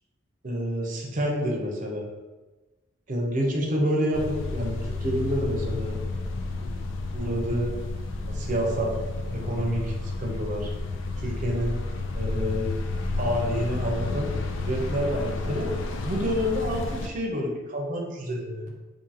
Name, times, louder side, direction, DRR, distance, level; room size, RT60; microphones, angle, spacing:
voice 1, 0.4-2.0 3.1-6.0 7.1-7.8 8.3-9.0 9.3-10.7 11.2-11.8 12.1-12.7 13.2-14.3 14.6-15.7 16.0-18.7, equal, 40° right, -1 dB, 0.6 m, -28 dB
sound 1, 4.1-17.1, left 2 dB, 70° left, 0.4 m, -31 dB
2.8 x 2.6 x 4.0 m, 1.2 s
head